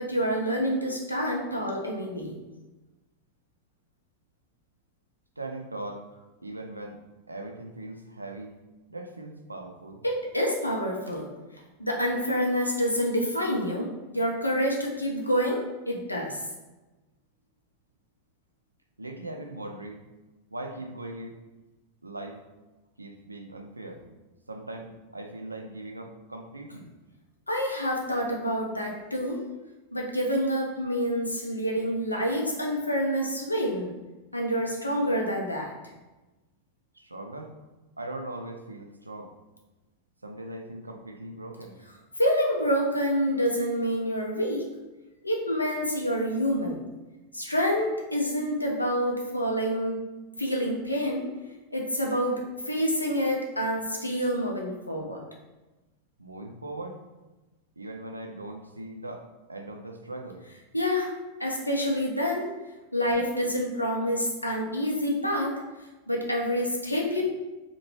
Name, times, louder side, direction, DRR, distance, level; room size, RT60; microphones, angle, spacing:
voice 1, 0.0-2.3 10.0-11.3 11.8-13.9 14.1-16.4 27.5-29.4 29.9-33.9 34.3-35.7 42.2-44.6 45.2-46.8 47.3-50.0 50.4-51.2 51.7-55.2 60.7-61.1 61.4-62.5 62.9-65.6 66.1-67.2, equal, 85° left, 0 dB, 0.5 m, -27 dB
voice 2, 5.4-6.1 6.4-7.0 7.3-8.6 8.9-10.0 19.0-20.0 20.5-21.4 22.0-22.4 23.0-24.0 24.5-26.9 36.9-37.5 38.0-39.3 40.2-41.8 56.2-57.0 57.8-59.2 59.5-60.4, right 2 dB, 80° right, 4 dB, 0.3 m, -39 dB
2.8 x 2.1 x 3.1 m, 1.1 s
figure-of-eight pair, 90°, 0 cm